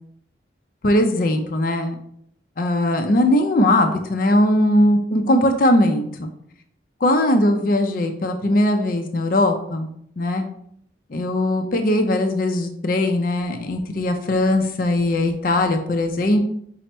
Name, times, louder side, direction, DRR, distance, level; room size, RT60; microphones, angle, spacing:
voice 1, 0.8-2.0 2.6-6.3 7.0-9.9 10.2-10.4 11.1-16.4, left 1 dB, 50° left, 5 dB, 0.5 m, -19 dB
5.8 x 2.1 x 4.2 m, 0.69 s
head